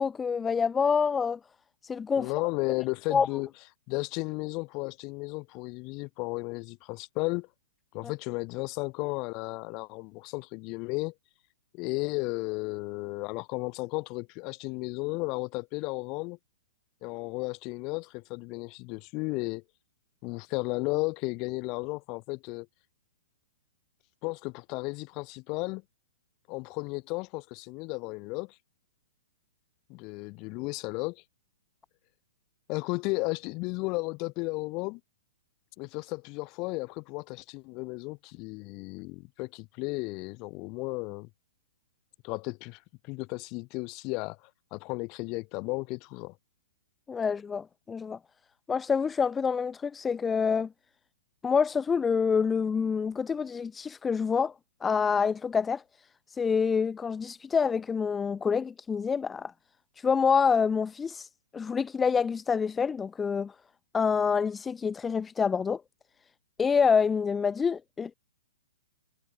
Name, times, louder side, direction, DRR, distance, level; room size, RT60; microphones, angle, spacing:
voice 1, 0.0-1.4 1.8-2.3 3.1-3.3 47.1-48.2 48.7-50.7 51.4-54.5 54.8-55.8 56.3-59.5 60.0-63.5 63.9-65.8 66.6-68.1, left 6 dB, 10° left, 0.4 m, -27 dB
voice 2, 2.2-3.5 3.9-7.5 7.9-11.1 11.7-16.4 17.0-19.6 20.2-22.7 24.2-25.8 26.5-28.5 29.9-31.2 32.7-35.0 35.8-41.3 42.2-44.4 44.7-46.3, left 27 dB, 25° left, 1.2 m, -34 dB
hypercardioid pair, 165°, 0 cm